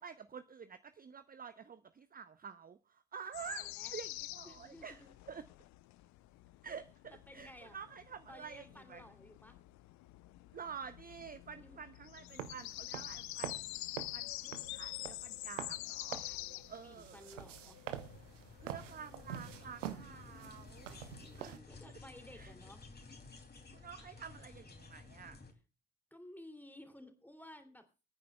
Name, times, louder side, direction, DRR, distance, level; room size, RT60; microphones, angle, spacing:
voice 1, 0.0-5.0 5.3-5.5 6.6-6.9 7.3-9.0 10.5-13.7 14.1-16.2 16.7-17.3 18.6-21.0 21.4-21.6 22.3-22.5 23.6-25.4, right 7 dB, 25° right, 12 dB, 0.8 m, -49 dB
sound 1, 3.3-21.8, left 18 dB, 50° left, 0.6 m, -48 dB
voice 2, 3.4-3.9 4.4-5.1 7.1-7.8 8.3-9.6 11.6-11.8 16.2-17.8 20.8-22.8 26.1-27.8, left 1 dB, 5° left, 6 dB, 2.8 m, -56 dB
sound 2, 12.3-21.6, right 10 dB, 80° right, 1.0 m, -47 dB
sound 3, 18.0-25.5, left 3 dB, 25° left, 2.8 m, -55 dB
27.5 x 9.6 x 2.3 m, 0.31 s
figure-of-eight pair, 45°, 37 cm